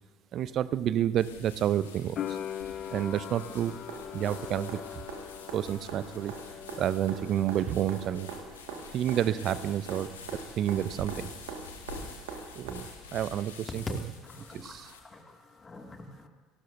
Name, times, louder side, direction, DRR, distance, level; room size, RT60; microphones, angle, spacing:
voice 1, 0.3-2.4 2.9-3.8 4.1-5.0 5.5-6.3 6.8-8.3 8.9-11.3 12.6-14.0 14.5-14.9, right 11 dB, 50° right, 16 dB, 0.6 m, -30 dB
sound 1, 1.2-15.0, left 5 dB, 85° left, 1.3 m, -49 dB
sound 2, 2.2-9.0 9.2-10.1, left 10 dB, 50° left, 0.7 m, -42 dB
sound 3, 3.6-12.7 14.7-14.8, right 5 dB, 70° right, 1.8 m, -43 dB
voice 2, 14.2-16.3, left 2 dB, 25° left, 2 dB, 2.2 m, -49 dB
28.5 x 12.0 x 2.6 m, 1.4 s
hypercardioid pair, 65°, 0 cm